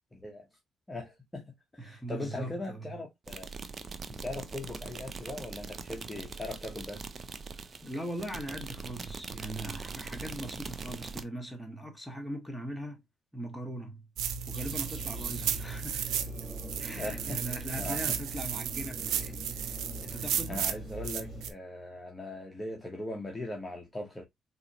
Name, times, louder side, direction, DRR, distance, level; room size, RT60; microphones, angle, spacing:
voice 1, 0.1-0.5 0.9-1.4 1.7-3.5 4.1-7.0 17.0-18.2 20.2-24.2, left 2 dB, 15° left, 0.9 m, -40 dB
voice 2, 1.8-3.0 7.5-13.0 13.3-14.0 14.5-16.3 16.8-20.7, right 1 dB, ahead, 1.3 m, -40 dB
sound 1, 3.3-11.2, right 4 dB, 40° right, 0.5 m, -42 dB
sound 2, 14.2-21.5, right 8 dB, 85° right, 0.5 m, -34 dB
sound 3, 14.5-21.5, left 2 dB, 35° left, 1.6 m, -47 dB
3.9 x 2.9 x 2.8 m
cardioid pair, 90°, 0 cm